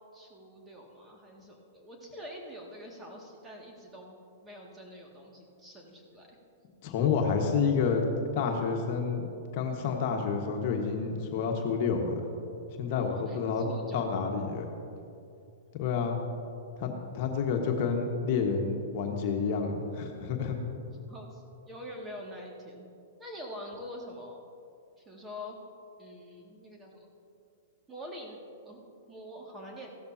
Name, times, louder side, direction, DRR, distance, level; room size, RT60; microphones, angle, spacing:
voice 1, 0.0-6.4 13.1-14.2 21.1-22.9 23.2-24.4 25.0-25.6 26.0-27.1 27.9-28.4 28.6-28.8 29.1-29.9, equal, 15° right, -1 dB, 2.2 m, -45 dB
voice 2, 6.8-8.0 8.3-9.2 9.5-12.2 12.8-13.6 13.9-14.6 15.7-16.2 16.8-20.6, left 5 dB, 50° left, 2 dB, 1.5 m, -29 dB
15.5 x 12.5 x 2.8 m, 2.5 s
hypercardioid pair, 115°, 0 cm